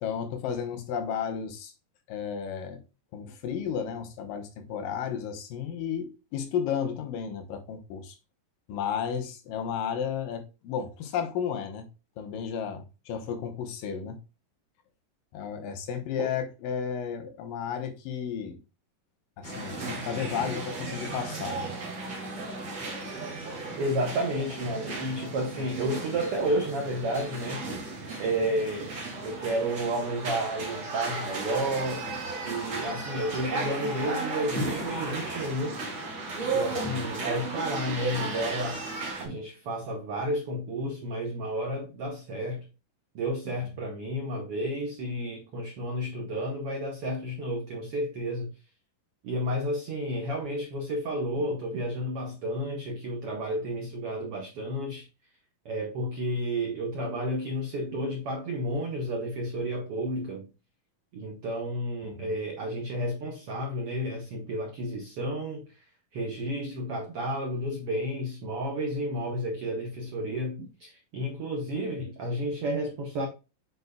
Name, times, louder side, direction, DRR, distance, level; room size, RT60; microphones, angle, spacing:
voice 1, 0.0-1.7 2.1-2.8 3.1-8.2 8.7-11.9 12.2-14.2 15.3-18.6 19.4-21.7 36.7-37.1 62.0-62.3, left 7 dB, 75° left, 2.6 m, -33 dB
sound 1, 19.4-39.2, right 3 dB, 40° right, 2.5 m, -35 dB
voice 2, 23.8-27.7 28.2-32.1 32.4-35.8 36.5-38.8 39.2-42.7 43.1-48.5 49.2-55.0 55.6-60.5 61.1-65.7 66.1-73.3, right 1 dB, 75° right, 1.3 m, -31 dB
8.0 x 6.1 x 2.2 m
omnidirectional pair, 4.0 m